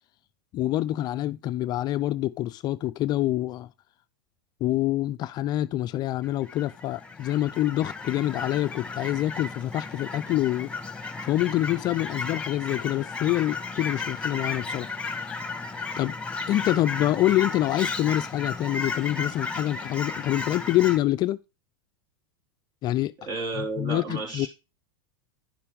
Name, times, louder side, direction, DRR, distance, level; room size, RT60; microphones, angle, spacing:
voice 1, 0.5-3.7 4.6-10.7 11.2-14.9 16.0-16.1 16.5-21.4 22.8-23.1 23.6-24.5, left 14 dB, 35° left, 0.4 m, -26 dB
Fowl / Chirp tweet, 6.2-21.0, left 4 dB, 10° left, 1.6 m, -34 dB
voice 2, 23.2-24.5, right 3 dB, 40° right, 5.2 m, -32 dB
11.0 x 6.7 x 3.6 m
hypercardioid pair, 100°, 12 cm